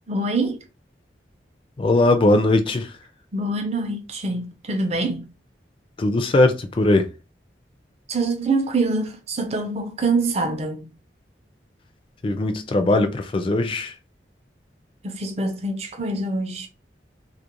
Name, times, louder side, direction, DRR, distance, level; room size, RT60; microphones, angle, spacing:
voice 1, 0.1-0.6 3.3-5.3 8.1-10.9 15.0-16.7, right 3 dB, 35° right, 0.5 m, -25 dB
voice 2, 1.8-2.9 6.0-7.1 12.2-13.9, left 2 dB, 30° left, 0.3 m, -19 dB
2.4 x 2.1 x 2.9 m
head